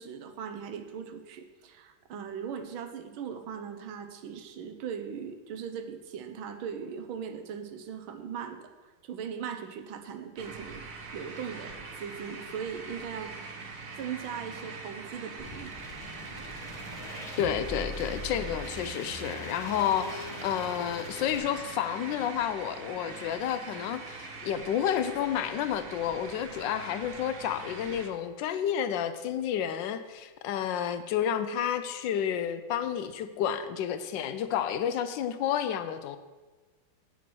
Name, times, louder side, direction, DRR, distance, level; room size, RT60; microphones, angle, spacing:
voice 1, 0.0-8.7 9.0-10.8 11.1-13.3 14.0-15.7, right 7 dB, 90° right, 7 dB, 1.7 m, -39 dB
sound 1, 10.4-28.1, right 4 dB, 50° right, 1.4 m, -43 dB
sound 2, 15.4-21.4, left 1 dB, 20° left, 1.4 m, -42 dB
voice 2, 17.4-36.2, left 9 dB, 75° left, 11 dB, 1.2 m, -30 dB
8.5 x 5.9 x 6.1 m, 1.3 s
omnidirectional pair, 2.2 m